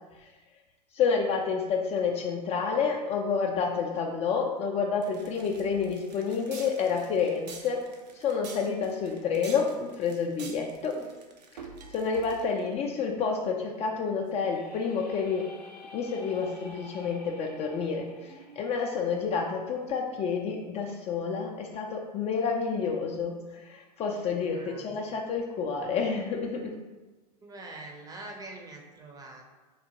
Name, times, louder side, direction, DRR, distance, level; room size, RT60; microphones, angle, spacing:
voice 1, 0.9-7.8 8.1-11.0 11.9-15.5 15.9-26.7, left 5 dB, 30° left, 1 dB, 0.3 m, -29 dB
sound 1, 5.0-12.7, right 5 dB, 85° right, 0.5 m, -47 dB
voice 2, 8.9-9.2 10.9-11.0 18.2-18.5 24.3-25.0 27.4-29.4, right 2 dB, 20° right, 1 dB, 0.5 m, -45 dB
sound 2, 14.3-20.1, left 2 dB, 85° left, 0.6 m, -50 dB
3.7 x 2.4 x 2.8 m, 1.2 s
hypercardioid pair, 100°, 21 cm